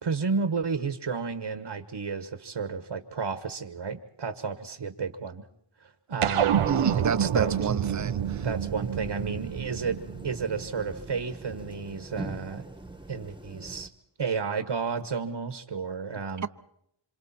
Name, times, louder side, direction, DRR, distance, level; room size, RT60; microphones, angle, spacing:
voice 1, 0.0-5.5 5.8-7.5 8.4-10.0 10.2-12.6 13.1-13.9 14.2-16.5, right 5 dB, 60° right, 1.4 m, -32 dB
sound 1, 6.2-10.9, right 9 dB, 85° right, 0.8 m, -28 dB
sound 2, 6.5-13.9, right 2 dB, 10° right, 1.3 m, -42 dB
voice 2, 6.7-8.5, right 6 dB, 35° right, 0.8 m, -29 dB
26.5 x 26.5 x 4.3 m
cardioid pair, 50°, 50 cm